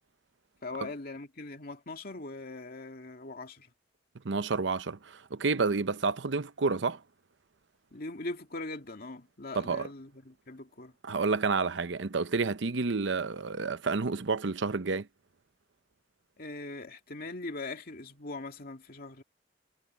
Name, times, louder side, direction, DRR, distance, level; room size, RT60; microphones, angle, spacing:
voice 1, 0.6-3.7 7.9-10.9 16.4-19.2, left 2 dB, 55° left, 2.4 m, -41 dB
voice 2, 4.2-7.0 9.6-9.9 11.0-15.1, right 4 dB, 75° right, 0.8 m, -29 dB
head